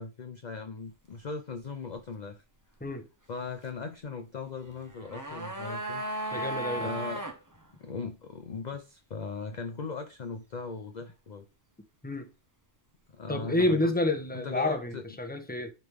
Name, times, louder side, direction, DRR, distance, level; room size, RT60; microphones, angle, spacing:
voice 1, 0.0-2.4 3.3-6.0 6.8-7.3 7.8-11.5 13.1-13.9 14.3-15.0, left 4 dB, 45° left, 0.7 m, -38 dB
sound 1, 4.8-7.4 7.6-7.7, right 1 dB, 15° right, 0.9 m, -35 dB
voice 2, 6.3-6.9 12.0-12.3 13.3-15.7, left 1 dB, 10° left, 1.0 m, -29 dB
11.0 x 3.9 x 3.5 m
omnidirectional pair, 1.3 m